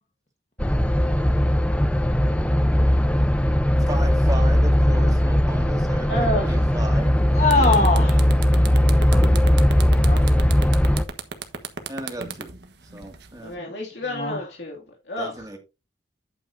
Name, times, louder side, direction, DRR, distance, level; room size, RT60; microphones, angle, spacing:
sound 1, 0.6-11.0, equal, 5° left, 0.6 m, -19 dB
voice 1, 3.9-7.2 11.9-12.5 12.9-13.5 15.2-15.6, right 1 dB, 20° right, 2.2 m, -35 dB
voice 2, 6.1-6.6 13.4-15.5, equal, 80° left, 2.5 m, -30 dB
sound 2, 7.0-7.1 7.4-13.5, right 5 dB, 75° right, 1.3 m, -34 dB
voice 3, 7.3-8.3 9.9-10.2 13.6-13.7 14.1-14.4, left 3 dB, 40° left, 1.2 m, -22 dB
9.5 x 8.7 x 2.7 m
head